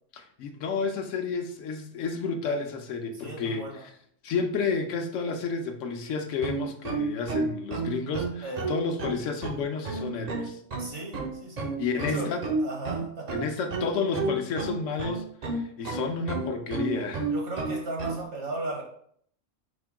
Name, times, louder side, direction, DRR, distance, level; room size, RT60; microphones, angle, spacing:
voice 1, 0.1-3.6 4.2-10.6 11.8-12.4 13.3-17.3, left 5 dB, 75° left, 5 dB, 1.0 m, -31 dB
voice 2, 3.1-3.8 8.4-8.7 10.8-13.4 17.3-18.8, right 2 dB, 65° right, -1 dB, 1.3 m, -36 dB
sound 1, 6.3-18.2, right 4 dB, 50° right, 0.5 m, -31 dB
5.0 x 2.2 x 4.6 m, 0.65 s
omnidirectional pair, 1.3 m